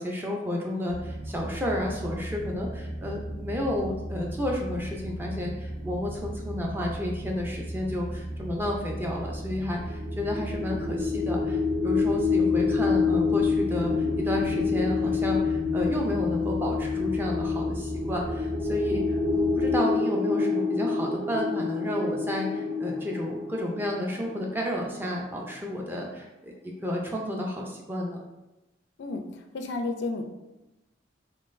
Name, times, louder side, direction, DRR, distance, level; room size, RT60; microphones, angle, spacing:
voice 1, 0.0-26.5 26.8-28.2, left 1 dB, 10° right, -1 dB, 0.4 m, -31 dB
sound 1, 0.9-19.7, right 1 dB, 65° right, 1.2 m, -36 dB
sound 2, 9.8-24.8, left 4 dB, 45° right, 1.4 m, -27 dB
voice 2, 29.0-30.3, left 3 dB, 70° left, 5 dB, 0.4 m, -32 dB
3.7 x 3.2 x 2.5 m, 0.99 s
head